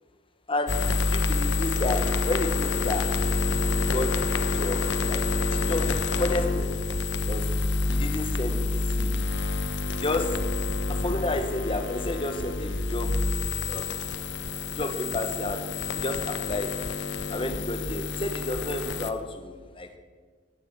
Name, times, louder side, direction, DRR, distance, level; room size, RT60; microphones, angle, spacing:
voice 1, 0.5-0.8 1.1-3.1 3.7-5.2 5.5-6.8 7.2-7.5 7.9-9.3 10.0-10.4 10.9-13.1 13.7-13.9 14.8-15.7 15.9-16.8 17.3-19.9, left 2 dB, 30° left, 7 dB, 1.4 m, -31 dB
sound 1, 0.7-19.1, left 3 dB, 70° left, 1.1 m, -28 dB
16.5 x 11.0 x 7.4 m, 1.5 s
head